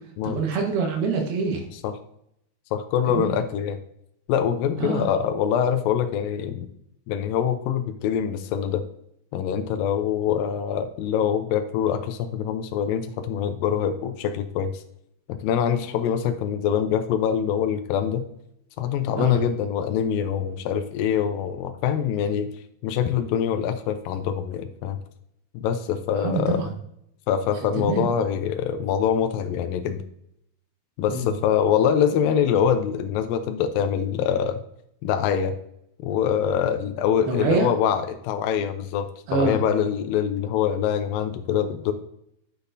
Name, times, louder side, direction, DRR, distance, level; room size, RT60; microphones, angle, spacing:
voice 1, 0.2-1.7 3.1-3.3 4.8-5.1 19.2-19.4 26.2-26.7 27.7-28.0 31.1-31.3 37.3-37.7 39.3-39.6, right 4 dB, 80° right, 2 dB, 3.3 m, -25 dB
voice 2, 2.7-3.8 4.3-6.7 7.1-8.8 9.3-14.8 15.3-18.3 18.8-22.5 22.8-25.0 25.5-26.6 27.3-30.0 31.0-34.6 35.0-35.6 36.0-41.9, left 8 dB, 80° left, 7 dB, 2.2 m, -24 dB
9.9 x 6.8 x 2.6 m, 0.74 s
omnidirectional pair, 4.3 m